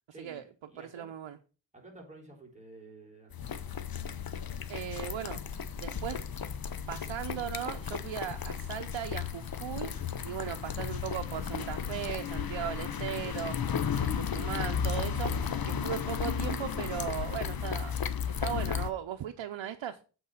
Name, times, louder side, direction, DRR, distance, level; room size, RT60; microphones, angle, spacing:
voice 1, 0.1-1.1 1.7-3.6, right 2 dB, 15° right, -2 dB, 4.0 m, -52 dB
voice 2, 0.8-1.4 4.7-5.4 5.8-6.3 6.9-9.9 10.2-13.6 14.0-18.0 18.4-20.0, right 10 dB, 85° right, 6 dB, 0.7 m, -37 dB
sound 1, 3.3-18.9, left 7 dB, 50° left, 0.8 m, -34 dB
8.1 x 4.2 x 6.5 m, 0.37 s
wide cardioid pair, 75°, 45 cm